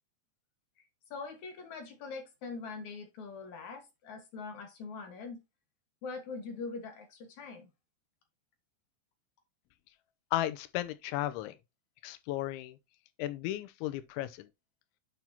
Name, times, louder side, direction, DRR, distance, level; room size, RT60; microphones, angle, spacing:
voice 1, 1.1-5.4 6.0-7.7, left 4 dB, 60° left, 2.1 m, -43 dB
voice 2, 10.3-11.6 12.0-12.8 13.2-14.5, left 14 dB, 85° left, 3.1 m, -34 dB
8.9 x 5.9 x 2.8 m
omnidirectional pair, 5.3 m